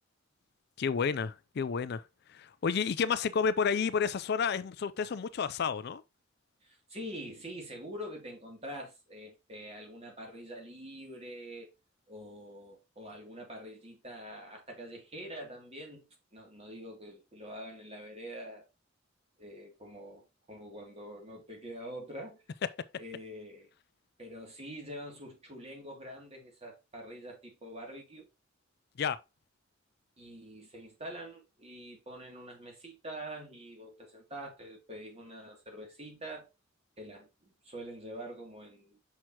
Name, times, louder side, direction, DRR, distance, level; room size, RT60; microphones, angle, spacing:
voice 1, 0.8-2.0 2.3-6.0 29.0-29.2, left 6 dB, 55° left, 0.4 m, -30 dB
voice 2, 6.6-11.7 12.1-18.7 19.4-22.4 23.0-23.7 24.2-28.3 30.2-36.5 37.0-39.0, equal, 30° right, 2.5 m, -45 dB
6.2 x 5.9 x 2.9 m
head